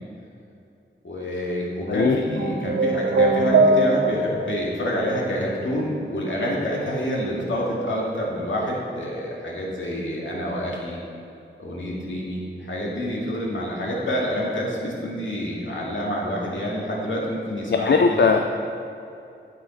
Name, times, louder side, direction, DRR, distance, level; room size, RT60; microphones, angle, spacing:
voice 1, 1.0-11.0 11.6-18.2, equal, 75° left, -4 dB, 2.2 m, -27 dB
voice 2, 1.9-2.2 17.7-18.4, left 5 dB, 60° left, 3 dB, 0.5 m, -19 dB
sound 1, 2.4-4.4, right 3 dB, 90° right, 0.9 m, -20 dB
9.3 x 7.6 x 5.2 m, 2.7 s
wide cardioid pair, 90°, 20 cm